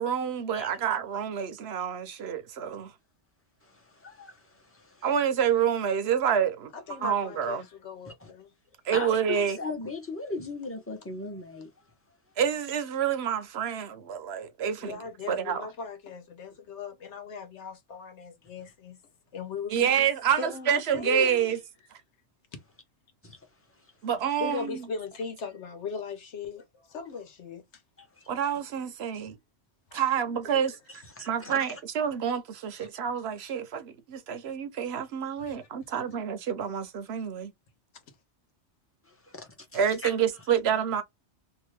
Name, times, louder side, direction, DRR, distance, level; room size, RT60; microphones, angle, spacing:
voice 1, 0.0-2.9 5.0-6.7 7.0-7.6 8.9-9.6 12.4-14.9 15.3-15.6 19.7-21.6 24.0-24.8 28.3-29.4 29.9-30.7 31.2-37.5 39.7-41.0, right 8 dB, 65° right, 0.8 m, -28 dB
voice 2, 3.6-5.1 8.1-8.3 8.9-11.7 23.2-23.4 23.8-23.9 28.0-28.3 29.9-30.0 30.9-31.8 39.0-40.2, left 3 dB, 15° left, 0.8 m, -39 dB
voice 3, 6.7-8.5 14.8-19.0 19.3-20.1 20.4-21.6 24.4-27.8 30.3-30.8 32.8-32.9 35.5-35.7 35.9-36.2, left 5 dB, 75° left, 1.2 m, -38 dB
2.8 x 2.4 x 3.1 m
omnidirectional pair, 1.2 m